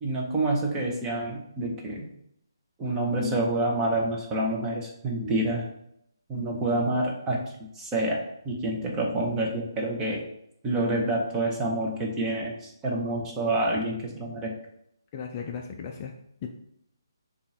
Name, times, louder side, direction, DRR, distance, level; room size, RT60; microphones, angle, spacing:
voice 1, 0.0-2.1 2.8-5.7 6.3-7.4 7.8-10.2 10.6-14.6, right 1 dB, 15° right, -1 dB, 0.8 m, -28 dB
voice 2, 15.1-16.1 16.4-16.5, left 6 dB, 30° left, 2 dB, 0.4 m, -36 dB
6.7 x 2.5 x 2.8 m, 0.76 s
figure-of-eight pair, 145°, 2 cm